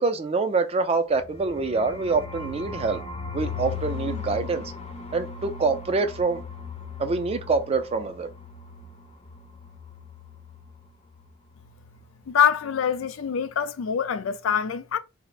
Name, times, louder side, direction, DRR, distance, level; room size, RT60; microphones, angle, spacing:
voice 1, 0.0-3.0 3.3-4.7 5.1-6.4 7.0-8.3, right 4 dB, 30° right, 0.3 m, -25 dB
sound 1, 1.2-10.9 11.1-11.3 11.5-12.0, left 5 dB, 30° left, 0.6 m, -38 dB
voice 2, 12.3-15.0, left 8 dB, 80° left, 0.4 m, -24 dB
2.5 x 2.1 x 3.7 m
head